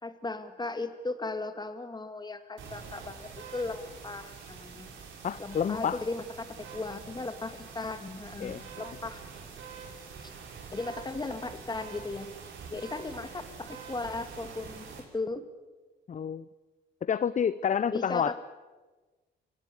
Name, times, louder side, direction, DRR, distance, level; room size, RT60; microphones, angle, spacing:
voice 1, 0.0-4.9 5.4-9.3 10.2-10.3 10.7-12.3 12.7-15.4 17.9-18.4, left 3 dB, 20° left, 9 dB, 2.3 m, -37 dB
sound 1, 2.6-15.0, right 5 dB, 75° right, 6.2 m, -46 dB
voice 2, 5.2-6.0 8.4-8.6 16.1-16.4 17.0-18.4, left 8 dB, 40° left, 16 dB, 0.7 m, -29 dB
27.0 x 17.5 x 8.4 m, 1.2 s
cardioid pair, 90°, 20 cm